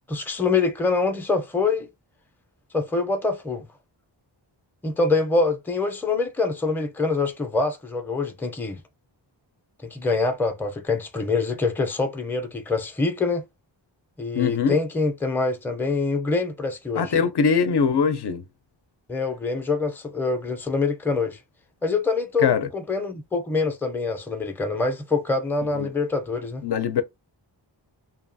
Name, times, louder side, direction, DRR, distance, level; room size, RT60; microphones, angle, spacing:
voice 1, 0.1-1.9 2.7-3.7 4.8-8.8 9.8-13.4 14.2-17.1 19.1-21.4 21.8-26.6, left 3 dB, 5° left, 0.5 m, -25 dB
voice 2, 14.3-14.8 16.9-18.4 22.4-22.7 25.7-25.9 26.6-27.0, left 6 dB, 60° left, 0.6 m, -22 dB
2.8 x 2.3 x 2.6 m
wide cardioid pair, 95°, 47 cm